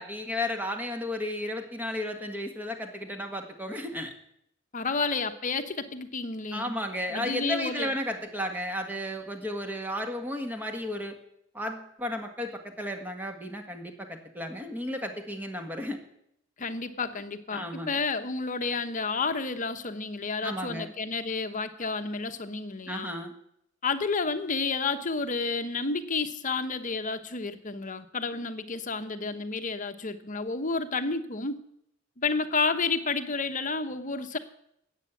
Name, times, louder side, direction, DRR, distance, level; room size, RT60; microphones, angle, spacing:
voice 1, 0.0-4.1 6.5-11.2 11.5-16.0 17.5-17.9 20.4-20.9 22.9-23.3, left 1 dB, 10° right, 4 dB, 1.7 m, -33 dB
voice 2, 4.7-6.7 7.1-7.9 16.6-23.1 23.8-31.6 32.2-34.4, left 4 dB, 40° left, 9 dB, 1.0 m, -30 dB
13.0 x 8.5 x 8.2 m, 0.76 s
head